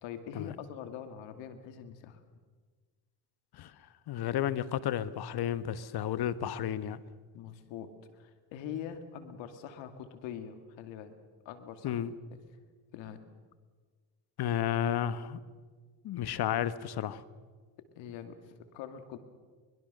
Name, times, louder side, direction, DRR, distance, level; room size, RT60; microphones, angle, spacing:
voice 1, 0.0-2.2 7.3-11.1 11.4-12.0 12.3-12.4 12.9-13.2 18.0-19.2, left 8 dB, 75° left, 9 dB, 2.4 m, -43 dB
voice 2, 4.1-7.0 11.8-12.1 14.4-15.4 16.0-17.2, left 10 dB, 55° left, 15 dB, 1.3 m, -32 dB
23.0 x 21.5 x 6.8 m, 1.5 s
supercardioid pair, 70°, 45 cm